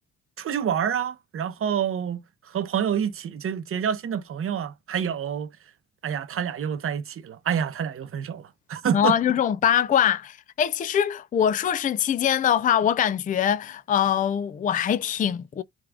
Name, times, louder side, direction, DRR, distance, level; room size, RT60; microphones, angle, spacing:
voice 1, 0.4-5.6 6.0-9.2, right 8 dB, 45° right, 0.8 m, -28 dB
voice 2, 8.9-15.6, left 9 dB, 30° left, 0.4 m, -23 dB
3.5 x 2.4 x 3.4 m
cardioid pair, 90°, 30 cm